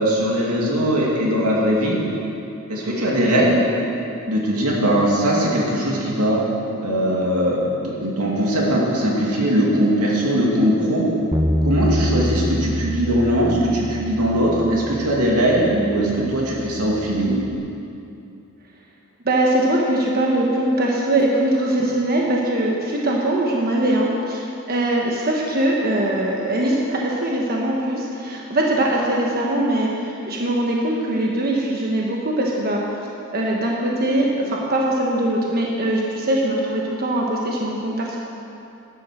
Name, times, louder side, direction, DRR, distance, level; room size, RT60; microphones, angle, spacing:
voice 1, 0.0-2.0 2.7-3.6 4.3-6.4 6.8-11.0 11.6-17.4, equal, 90° right, -3 dB, 2.5 m, -20 dB
Bass guitar, 11.3-17.6, equal, 10° right, 0.6 m, -26 dB
voice 2, 19.2-32.8 33.3-38.2, right 1 dB, 45° right, -2 dB, 1.2 m, -21 dB
12.0 x 9.3 x 6.4 m, 2.7 s
head